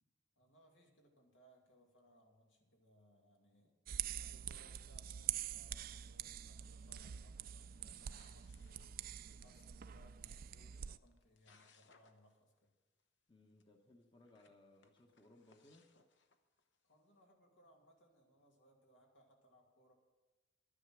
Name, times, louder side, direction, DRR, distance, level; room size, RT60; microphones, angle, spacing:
voice 1, 0.4-3.7 4.1-12.7 16.8-19.9, equal, 90° left, 1 dB, 2.3 m, -68 dB
sound 1, 3.9-11.0, right 10 dB, 50° right, 0.4 m, -45 dB
sound 2, 6.9-7.2 7.6-9.6 10.7-10.8 11.0-12.4 12.6-12.7 13.0-13.1 13.6-13.7 14.1-16.9, left 5 dB, 70° left, 0.9 m, -71 dB
voice 2, 13.3-15.9, left 1 dB, 25° left, 4 dB, 0.9 m, -65 dB
11.0 x 9.8 x 6.1 m, 1.1 s
head